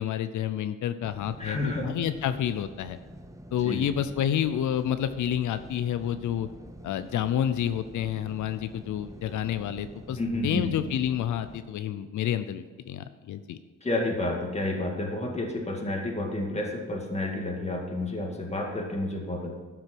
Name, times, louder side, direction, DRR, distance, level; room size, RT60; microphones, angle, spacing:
voice 1, 0.0-1.6 1.8-3.0 3.5-6.5 6.8-13.6, left 10 dB, 90° left, 11 dB, 0.5 m, -29 dB
sound 1, 1.0-11.6, right 1 dB, 10° right, 0.7 m, -47 dB
voice 2, 1.4-2.0 3.6-3.9 10.1-10.8 13.8-19.5, left 2 dB, 20° left, 1 dB, 1.9 m, -30 dB
12.0 x 6.0 x 6.0 m, 1.5 s
wide cardioid pair, 130°, 29 cm